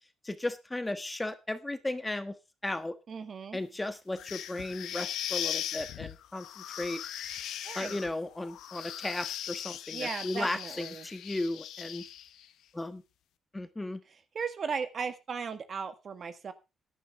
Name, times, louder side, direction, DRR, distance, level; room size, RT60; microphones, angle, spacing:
voice 1, 0.2-2.3 2.6-3.0 3.5-7.0 7.7-12.1 12.7-13.0 13.5-14.0, left 2 dB, 15° left, 10 dB, 1.3 m, -35 dB
voice 2, 3.1-3.6 7.6-8.0 9.9-11.1 14.3-16.5, right 5 dB, 50° right, 10 dB, 1.6 m, -36 dB
sound 1, 4.2-12.5, left 11 dB, 80° left, 1.0 m, -39 dB
14.5 x 10.5 x 3.5 m, 0.27 s
cardioid pair, 90°, 0 cm